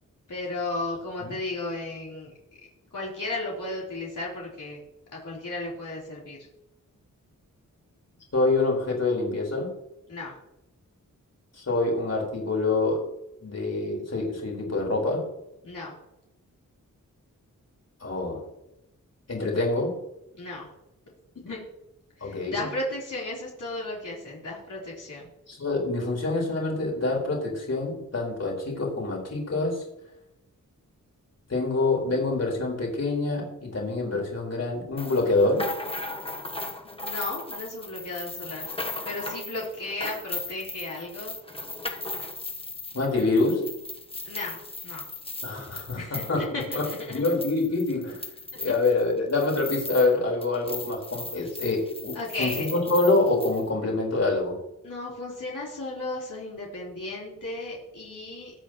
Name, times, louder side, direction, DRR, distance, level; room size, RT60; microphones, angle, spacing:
voice 1, 0.3-2.3 2.9-4.8 5.1-6.5 10.1-10.3 15.6-15.9 20.3-20.7 21.4-21.6 22.2-25.2 36.8-38.7 39.0-41.3 44.2-45.0 45.9-47.2 52.1-52.7 54.8-58.5, left 2 dB, 65° left, -5 dB, 3.9 m, -34 dB
voice 2, 8.3-9.7 11.6-13.1 13.4-15.2 18.0-18.4 19.3-19.9 22.2-22.6 25.5-29.8 31.5-35.7 42.9-43.6 45.4-48.2 48.6-54.5, left 3 dB, 50° left, -2 dB, 4.5 m, -26 dB
sound 1, 35.0-50.2 50.4-53.6, left 2 dB, 15° left, 1.1 m, -37 dB
21.5 x 9.0 x 3.0 m, 0.87 s
wide cardioid pair, 105°, 33 cm